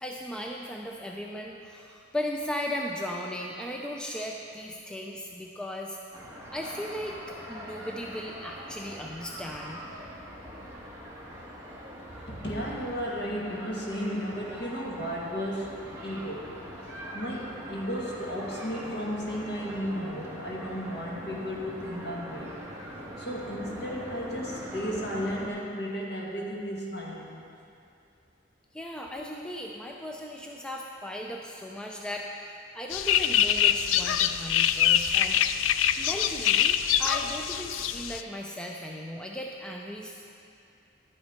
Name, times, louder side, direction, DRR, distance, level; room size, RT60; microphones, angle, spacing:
voice 1, 0.0-6.0 6.5-9.8 28.7-35.4 36.0-40.2, equal, 5° left, 0 dB, 0.4 m, -37 dB
sound 1, 6.1-25.5, equal, 15° right, 1.3 m, -42 dB
voice 2, 12.1-16.5 16.8-22.6 23.2-27.3, equal, 55° left, -3 dB, 1.7 m, -34 dB
sound 2, 32.9-38.2, left 10 dB, 85° left, 0.3 m, -24 dB
11.0 x 8.7 x 4.4 m, 2.6 s
head